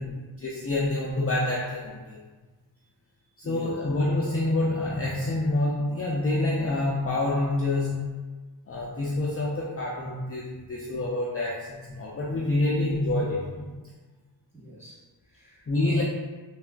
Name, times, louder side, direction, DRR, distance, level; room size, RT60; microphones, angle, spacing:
voice 1, 0.0-2.2 3.4-8.2 8.7-13.7 15.7-16.0, left 2 dB, 35° left, -5 dB, 0.5 m, -27 dB
voice 2, 3.4-3.7 14.5-16.0, right 3 dB, 5° right, -9 dB, 1.2 m, -45 dB
3.4 x 2.3 x 2.3 m, 1.3 s
wide cardioid pair, 70°, 43 cm